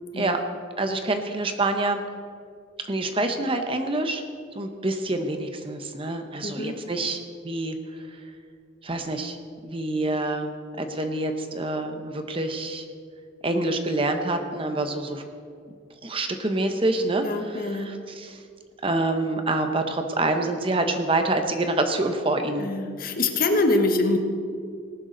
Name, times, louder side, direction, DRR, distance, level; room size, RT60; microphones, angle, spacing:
voice 1, 0.8-2.0 2.9-4.2 4.5-7.2 7.4-7.8 8.8-9.4 9.6-12.8 13.4-15.2 16.0-18.4 18.8-22.7, right 2 dB, 30° right, 6 dB, 0.9 m, -26 dB
voice 2, 6.4-6.8 17.2-17.9 22.6-24.2, left 2 dB, 45° left, 5 dB, 1.3 m, -24 dB
19.0 x 11.5 x 3.9 m, 2.2 s
head